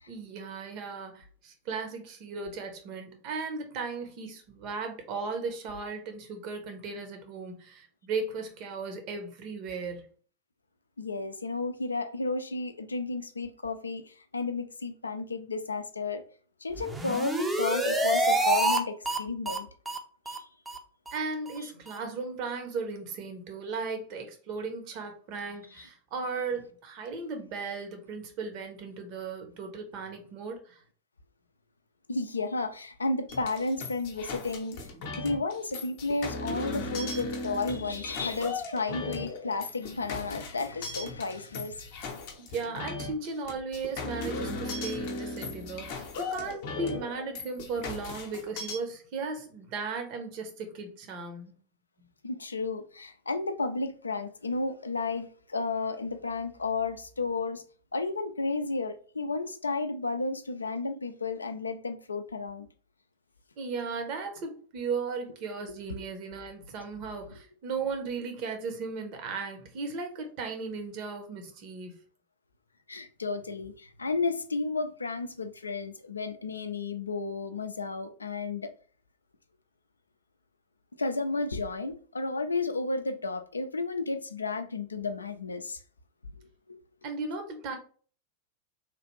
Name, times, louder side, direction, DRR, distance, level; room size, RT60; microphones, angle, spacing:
voice 1, 0.1-10.1 21.1-30.8 42.4-51.5 63.6-71.9 87.0-87.8, right 4 dB, 40° right, 0.8 m, -36 dB
voice 2, 11.0-16.2 16.6-19.7 20.3-20.5 25.8-25.9 32.1-34.8 35.2-42.0 52.2-57.6 57.9-62.7 65.9-66.1 72.9-78.7 81.0-85.8 86.7-86.8, left 3 dB, 75° left, 0.3 m, -32 dB
sound 1, 16.8-18.8 19.1-19.2 19.5-19.6 19.9-20.0 20.3-20.4 20.7-20.8 21.1-21.2 21.5-21.6 21.9-22.0, right 1 dB, 10° right, 0.5 m, -27 dB
sound 2, 33.3-48.8, left 3 dB, 50° left, 0.7 m, -37 dB
3.2 x 2.4 x 3.0 m
figure-of-eight pair, 90°, 0 cm